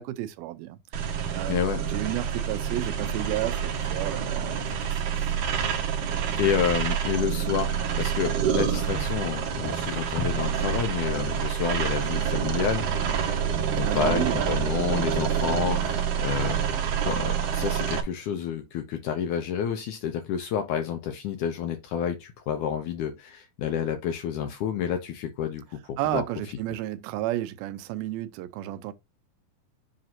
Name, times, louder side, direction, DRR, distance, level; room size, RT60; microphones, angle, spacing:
voice 1, 0.0-4.8 5.0-5.1 13.8-14.7 26.0-28.9, right 14 dB, 85° right, 2.5 m, -32 dB
sound 1, 0.9-18.0, right 7 dB, 65° right, 1.7 m, -27 dB
voice 2, 1.5-1.8 6.4-12.9 13.7-16.6 17.0-26.2, left 8 dB, 75° left, 1.9 m, -29 dB
sound 2, 3.8-9.2 9.6-9.8 10.1-17.5, left 2 dB, 45° left, 1.6 m, -45 dB
7.7 x 2.6 x 5.8 m
omnidirectional pair, 4.2 m